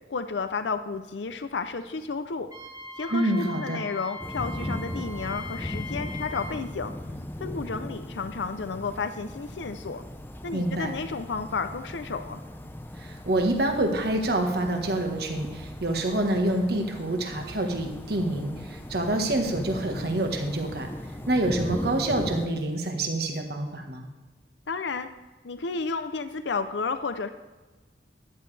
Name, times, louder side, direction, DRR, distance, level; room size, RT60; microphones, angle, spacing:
voice 1, 0.1-2.5 3.0-6.9 7.4-10.0 10.4-12.4 24.7-25.1 25.4-27.3, left 4 dB, 85° left, 10 dB, 0.6 m, -32 dB
Wind instrument woodwind instrument, 2.5-6.6, left 2 dB, 20° right, 1.2 m, -41 dB
voice 2, 3.1-3.8 10.5-10.9 13.0-20.9 21.3-24.1, right 1 dB, 60° right, 4 dB, 1.5 m, -27 dB
sound 1, 4.2-22.5, left 1 dB, 10° left, 0.6 m, -38 dB
14.0 x 11.0 x 3.3 m, 1.3 s
head